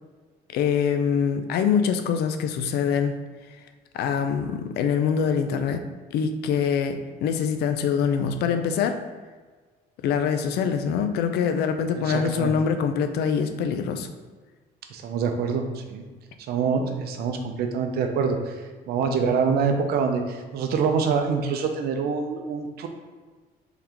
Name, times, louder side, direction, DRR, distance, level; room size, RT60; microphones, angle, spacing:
voice 1, 0.5-3.2 3.9-5.8 6.1-9.0 10.0-14.1, left 7 dB, 75° left, 7 dB, 0.4 m, -24 dB
voice 2, 12.0-12.5 14.9-16.0 16.5-18.5 18.9-22.9, right 5 dB, 70° right, 5 dB, 0.6 m, -25 dB
3.7 x 3.5 x 2.9 m, 1.4 s
cardioid pair, 110°, 17 cm